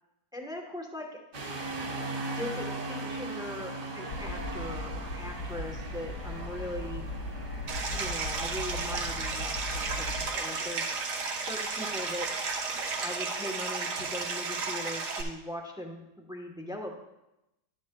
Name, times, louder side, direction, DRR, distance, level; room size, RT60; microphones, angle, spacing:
voice 1, 0.3-1.1 2.3-7.0 7.9-10.9 11.3-12.3 13.0-17.0, left 1 dB, 5° right, 2 dB, 0.7 m, -40 dB
sound 1, 1.3-13.1, right 2 dB, 50° right, 1.6 m, -40 dB
sound 2, 4.1-10.3, left 2 dB, 70° left, 1.2 m, -38 dB
Stream, 7.7-15.2, right 4 dB, 70° right, 1.6 m, -33 dB
11.5 x 10.5 x 2.3 m, 0.91 s
omnidirectional pair, 1.8 m